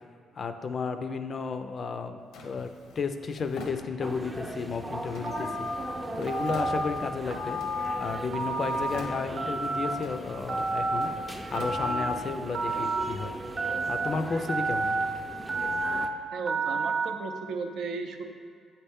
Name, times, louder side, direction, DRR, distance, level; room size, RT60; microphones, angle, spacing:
voice 1, 0.4-2.2 2.4-5.7 6.2-7.6 8.0-13.3 13.9-15.0, left 5 dB, 50° left, 8 dB, 0.4 m, -33 dB
Drawer open or close, 2.3-4.4 5.1-7.2 7.6-8.4 8.6-9.6 10.0-12.4, left 2 dB, 85° left, 0.7 m, -46 dB
sound 1, 4.0-16.1, right 1 dB, 15° right, 0.5 m, -39 dB
Telephone, 5.2-5.7 6.3-6.8 7.3-7.9 8.3-8.9 9.4-9.9 10.5-11.1 11.5-12.1 12.5-13.0 13.6-14.1 14.5-15.1 15.5-16.0 16.5-17.1, right 3 dB, 50° right, 0.8 m, -29 dB
voice 2, 16.3-18.3, right 4 dB, 80° right, 4 dB, 0.6 m, -35 dB
7.8 x 4.3 x 3.5 m, 2.1 s
cardioid pair, 90°, 0 cm